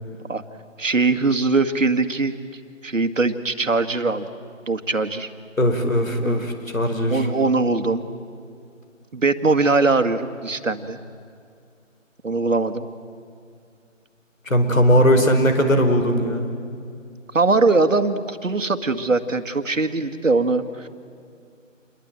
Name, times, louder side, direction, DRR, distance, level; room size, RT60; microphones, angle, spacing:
voice 1, 0.8-2.4 2.8-4.3 4.7-5.3 6.2-6.4 7.1-8.0 9.1-11.0 12.2-12.9 17.3-20.9, right 3 dB, 75° right, 10 dB, 2.0 m, -21 dB
voice 2, 5.6-7.3 14.5-16.5, equal, 85° left, 6 dB, 5.0 m, -19 dB
28.0 x 22.5 x 9.0 m, 2.3 s
figure-of-eight pair, 170°, 39 cm